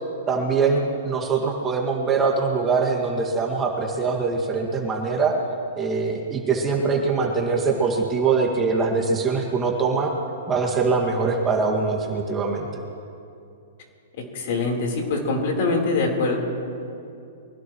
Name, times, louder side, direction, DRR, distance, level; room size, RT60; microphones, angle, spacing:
voice 1, 0.3-5.3 5.8-10.1 10.5-12.8, right 4 dB, 20° right, 0 dB, 2.0 m, -23 dB
voice 2, 14.3-16.4, left 3 dB, 55° left, 0 dB, 3.9 m, -23 dB
24.0 x 17.0 x 3.1 m, 2.5 s
hypercardioid pair, 135°, 0 cm